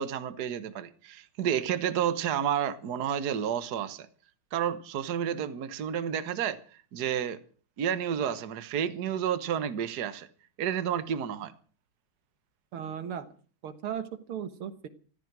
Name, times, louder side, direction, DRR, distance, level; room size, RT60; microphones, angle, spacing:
voice 1, 0.0-4.1 4.5-7.4 7.8-10.3 10.6-11.5, right 9 dB, 50° right, 1.6 m, -30 dB
voice 2, 12.7-13.3 13.6-14.9, right 8 dB, 75° right, 2.2 m, -36 dB
15.5 x 14.0 x 6.2 m
omnidirectional pair, 2.4 m